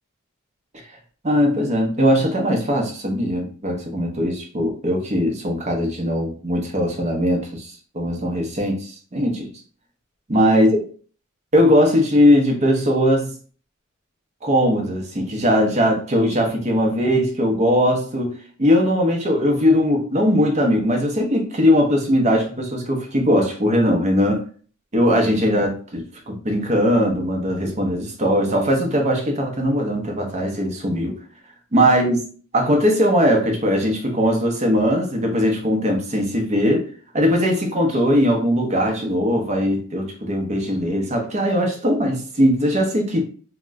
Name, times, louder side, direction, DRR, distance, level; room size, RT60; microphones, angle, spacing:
voice 1, 1.2-9.5 10.3-10.7 11.5-13.3 14.4-18.3 18.6-24.4 24.9-31.2 31.7-32.2 32.5-36.9 37.1-43.2, equal, 30° right, 0.7 m, -20 dB
2.9 x 2.1 x 3.4 m
head